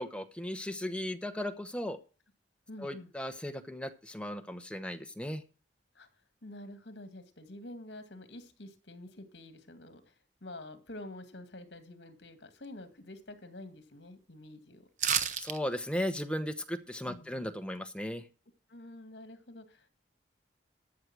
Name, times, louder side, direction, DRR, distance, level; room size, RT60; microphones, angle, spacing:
voice 1, 0.0-2.0 2.8-5.4 15.4-18.3, left 1 dB, 5° left, 8 dB, 0.9 m, -36 dB
voice 2, 2.7-3.1 5.9-6.1 6.4-14.9 17.1-17.5 18.7-19.9, left 1 dB, 70° left, 9 dB, 2.1 m, -48 dB
sound 1, 15.0-15.6 15.9-16.0, right 8 dB, 40° right, 0.9 m, -29 dB
13.5 x 6.5 x 6.1 m, 0.36 s
head